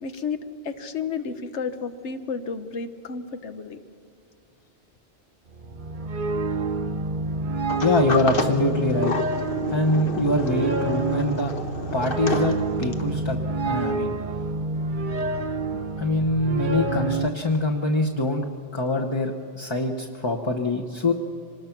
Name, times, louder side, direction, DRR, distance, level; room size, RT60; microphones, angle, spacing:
voice 1, 0.0-3.8, left 5 dB, 90° left, 9 dB, 1.3 m, -32 dB
sound 1, 5.5-17.3, right 3 dB, 50° right, 0.9 m, -28 dB
Sliding door, 7.7-13.1, left 3 dB, 55° left, 1.2 m, -30 dB
voice 2, 7.8-9.1 9.7-11.5 11.9-13.4 13.6-14.2 16.0-18.5 18.7-21.1, left 2 dB, 25° left, 3 dB, 0.9 m, -24 dB
25.0 x 20.0 x 5.9 m, 2.5 s
omnidirectional pair, 1.1 m